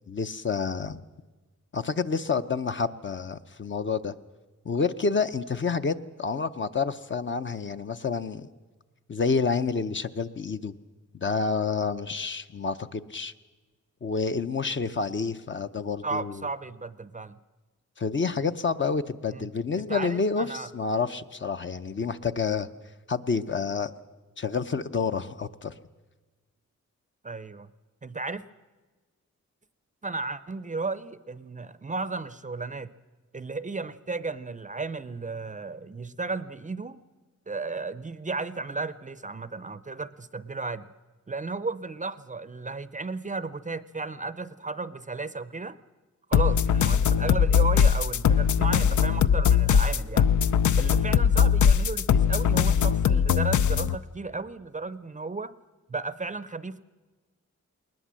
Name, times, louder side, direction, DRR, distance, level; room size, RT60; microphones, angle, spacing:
voice 1, 0.1-1.0 1.7-4.1 4.6-8.5 9.1-10.7 11.1-13.3 14.0-16.4 18.0-22.7 23.1-23.9 24.4-25.7, left 5 dB, 40° left, 10 dB, 0.7 m, -29 dB
voice 2, 16.0-17.4 19.3-19.5 19.8-20.7 27.2-27.7 28.0-28.4 30.0-32.9 33.3-37.0 37.5-40.9 41.3-45.8 46.3-50.3 50.8-55.5 55.9-56.8, right 3 dB, 25° right, 15 dB, 0.6 m, -34 dB
sound 1, 46.3-53.9, left 7 dB, 75° left, 0.6 m, -21 dB
20.0 x 20.0 x 7.5 m, 1.3 s
wide cardioid pair, 120°, 30 cm